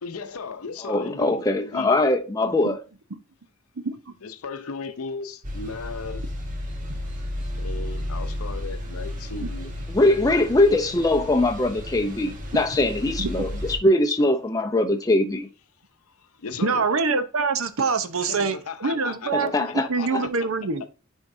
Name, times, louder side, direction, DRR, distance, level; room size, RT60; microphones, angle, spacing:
voice 1, 0.0-1.9 4.2-6.2 7.6-9.7 13.5-13.6 16.4-16.8 18.2-19.3 20.0-20.1, left 4 dB, 85° left, 0.7 m, -36 dB
voice 2, 0.8-2.8 9.9-15.5 19.3-19.9 20.1-20.2, left 2 dB, 15° left, 0.5 m, -22 dB
voice 3, 3.8-4.1 13.2-13.3 16.6-20.8, right 4 dB, 70° right, 0.8 m, -25 dB
sound 1, 5.4-13.8, left 1 dB, 40° right, 1.2 m, -33 dB
9.6 x 4.5 x 2.6 m
head